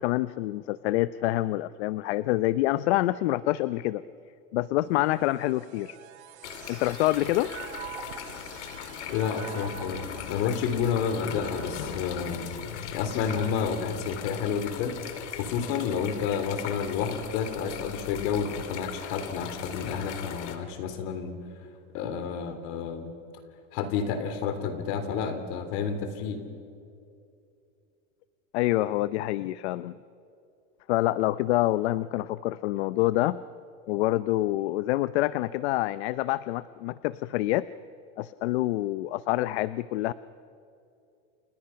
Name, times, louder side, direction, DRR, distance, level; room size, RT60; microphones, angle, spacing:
voice 1, 0.0-4.0 4.5-6.0 6.7-7.5 28.5-30.0 30.9-33.4 33.9-37.7 38.2-40.1, left 16 dB, 75° left, 15 dB, 0.7 m, -26 dB
sound 1, 4.9-16.4 17.1-17.9, right 9 dB, 85° right, 2.9 m, -48 dB
sound 2, 6.4-20.6, left 9 dB, 90° left, 2.7 m, -39 dB
voice 2, 9.1-12.6 12.9-15.0 15.4-21.4 21.9-23.1 23.7-26.4, left 6 dB, 50° left, 9 dB, 3.3 m, -30 dB
30.0 x 28.5 x 5.8 m, 2.6 s
supercardioid pair, 165°, 34 cm